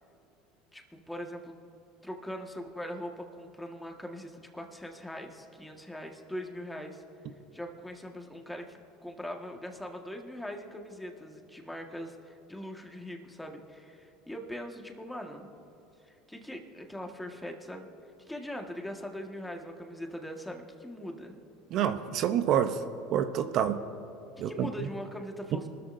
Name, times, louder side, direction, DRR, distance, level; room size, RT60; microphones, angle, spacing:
voice 1, 0.7-1.5 2.0-7.0 7.5-15.5 16.0-17.9 18.3-21.3 24.4-25.7, equal, 5° left, 3 dB, 1.6 m, -41 dB
voice 2, 21.7-22.7 23.1-23.8 24.4-24.7, right 9 dB, 55° right, 9 dB, 0.7 m, -27 dB
24.5 x 13.5 x 2.7 m, 2.9 s
supercardioid pair, 105°, 0 cm